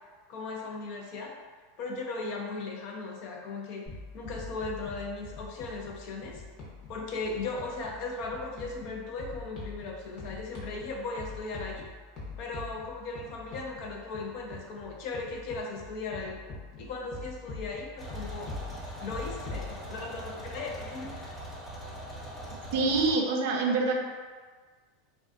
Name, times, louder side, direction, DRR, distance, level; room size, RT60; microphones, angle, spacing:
voice 1, 0.3-1.3 1.8-3.9 4.1-6.4 6.9-11.9 12.4-16.4 16.8-18.5 19.0-21.4, left 3 dB, 60° left, 0 dB, 0.5 m, -37 dB
sound 1, 3.9-19.7, left 3 dB, 40° left, 0.9 m, -44 dB
sound 2, 18.0-23.2, right 1 dB, 10° left, 0.6 m, -41 dB
voice 2, 22.7-24.0, right 3 dB, 70° right, 2 dB, 0.4 m, -25 dB
2.5 x 2.2 x 2.4 m, 1.5 s
supercardioid pair, 115°, 0 cm